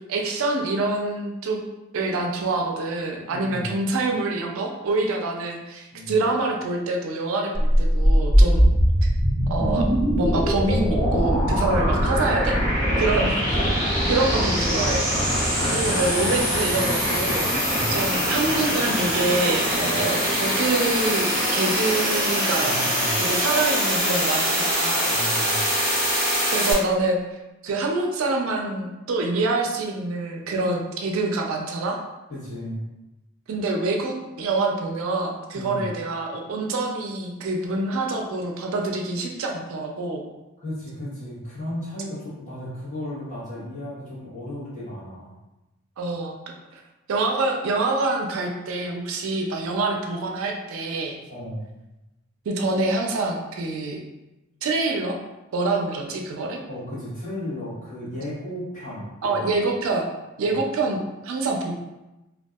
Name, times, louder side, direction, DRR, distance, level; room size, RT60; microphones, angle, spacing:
voice 1, 0.1-1.6 1.9-8.7 9.5-12.6 13.0-13.7 14.1-15.1 15.7-17.5 17.9-22.7 23.2-25.1 26.5-27.2 27.6-32.0 33.5-40.3 46.0-46.3 46.7-46.8 47.1-51.2 52.5-54.0 54.6-55.2 55.5-56.6 59.2-60.1 60.4-61.0 61.2-61.7, right 3 dB, 65° right, 2 dB, 0.4 m, -26 dB
voice 2, 3.3-3.7 5.9-6.1 8.6-8.7 13.1-13.9 15.6-15.9 16.4-16.7 17.6-17.9 22.6-23.2 25.0-25.7 32.3-32.8 35.5-35.8 40.6-45.3 51.3-51.6 56.7-59.5 60.4-60.6, equal, 35° left, -10 dB, 1.2 m, -35 dB
sound 1, 7.5-26.7, equal, 5° left, 1.1 m, -22 dB
2.6 x 2.3 x 2.3 m, 1.0 s
head